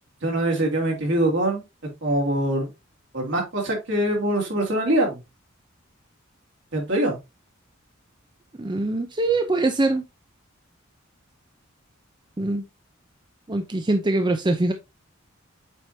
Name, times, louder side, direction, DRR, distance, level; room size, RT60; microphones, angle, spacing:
voice 1, 0.2-1.6 2.0-2.7 3.1-5.2 6.7-7.2, right 1 dB, 65° right, 3.0 m, -23 dB
voice 2, 8.6-10.0 12.4-12.6 13.5-14.7, right 2 dB, 20° right, 0.6 m, -23 dB
7.7 x 5.1 x 2.7 m
head